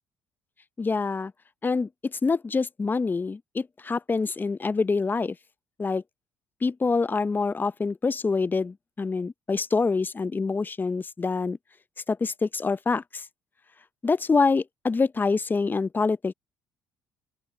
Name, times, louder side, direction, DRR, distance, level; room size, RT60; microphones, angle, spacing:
voice 1, 0.8-1.3 1.6-5.4 5.8-6.0 6.6-11.6 12.1-13.2 14.0-16.3, left 4 dB, 25° left, 0.7 m, -26 dB
open air
hypercardioid pair, 65°, 8 cm